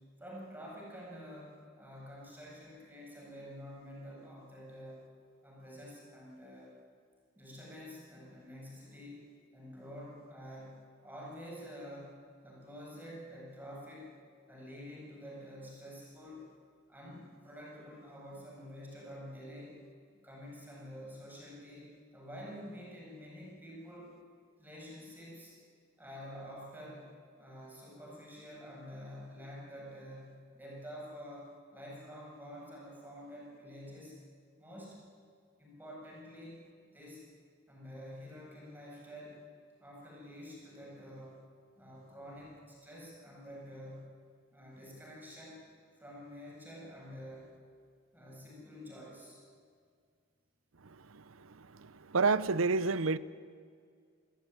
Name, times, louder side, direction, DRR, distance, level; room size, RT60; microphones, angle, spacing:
voice 1, 0.0-5.0 5.4-6.7 7.3-9.3 9.5-14.1 14.5-16.5 16.9-19.8 20.2-24.1 24.6-25.5 26.0-27.1 27.4-34.2 34.6-35.0 35.6-36.6 36.9-37.2 37.7-39.4 39.8-41.4 41.8-44.1 44.5-45.6 46.0-47.5 48.1-49.4, equal, 10° right, 7.9 m, -48 dB
voice 2, 52.1-53.2, right 4 dB, 75° right, 0.8 m, -27 dB
28.0 x 15.0 x 9.5 m
head